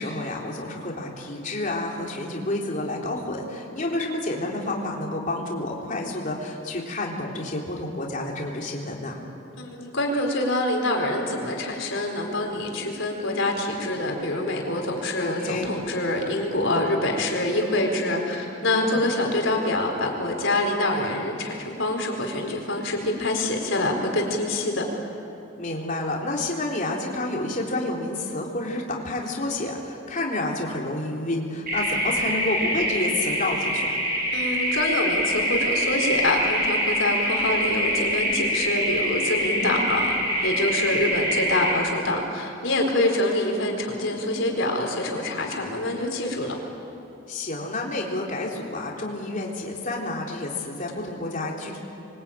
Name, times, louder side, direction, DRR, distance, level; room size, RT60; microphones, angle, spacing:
voice 1, 0.0-9.2 15.2-15.7 18.7-19.0 25.6-34.0 39.4-39.8 47.3-51.8, left 2 dB, 40° left, -1 dB, 3.6 m, -29 dB
voice 2, 9.6-24.8 34.3-40.1 40.4-46.5, left 1 dB, 65° left, 2 dB, 4.6 m, -25 dB
sound 1, 31.7-41.7, equal, 45° right, 7.0 m, -25 dB
28.0 x 23.5 x 8.9 m, 2.8 s
head